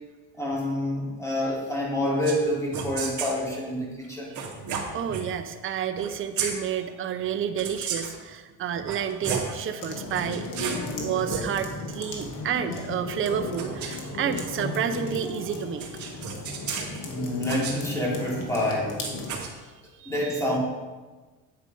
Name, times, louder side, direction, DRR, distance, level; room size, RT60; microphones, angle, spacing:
voice 1, 0.3-4.4 16.9-19.0 20.1-20.6, left 1 dB, 10° left, -5 dB, 4.2 m, -27 dB
sound 1, 2.2-2.4 2.7-3.4 4.3-5.3 5.9-6.1 6.3-6.5 7.6-8.2 8.7-9.6 10.1-10.9 11.2-11.4 13.3-14.8 15.8-17.0 17.5-17.8 19.0-19.5, right 6 dB, 50° right, 2.5 m, -33 dB
voice 2, 4.9-16.1 20.0-20.2, right 8 dB, 35° right, 7 dB, 0.8 m, -30 dB
sound 2, 9.8-19.4, left 3 dB, 55° left, 2.5 m, -35 dB
9.7 x 9.3 x 5.5 m, 1.3 s
cardioid pair, 125°, 37 cm